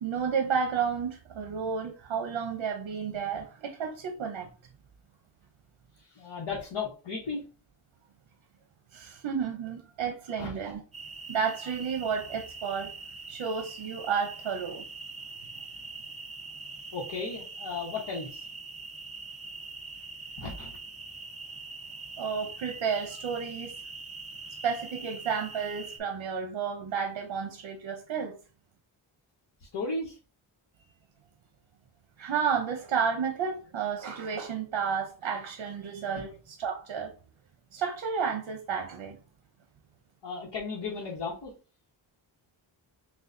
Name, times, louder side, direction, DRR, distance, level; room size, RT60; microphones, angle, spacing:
voice 1, 0.0-4.5 8.9-10.8 11.3-12.9 13.3-14.8 22.2-23.7 24.6-28.3 32.2-37.1 37.7-39.2, right 6 dB, 75° right, 0.8 m, -31 dB
voice 2, 6.0-7.4 10.4-10.6 16.9-18.5 20.4-20.8 29.6-30.2 40.2-41.5, left 4 dB, 70° left, 1.1 m, -35 dB
sound 1, 10.9-26.0, right 4 dB, 15° right, 0.7 m, -43 dB
6.2 x 2.3 x 2.6 m
wide cardioid pair, 175°, 46 cm